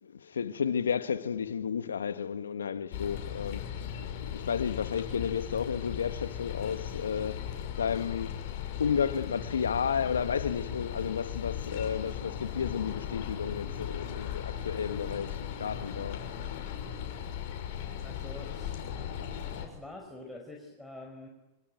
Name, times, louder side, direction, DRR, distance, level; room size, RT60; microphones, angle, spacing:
voice 1, 0.0-3.9 4.2-8.4 8.8-16.3, left 7 dB, 85° left, 1.4 m, -32 dB
sound 1, 2.9-19.7, left 9 dB, 60° left, 5.9 m, -37 dB
voice 2, 18.0-18.7 19.6-21.3, left 2 dB, 5° left, 5.5 m, -46 dB
25.5 x 24.5 x 9.2 m
hypercardioid pair, 100°, 0 cm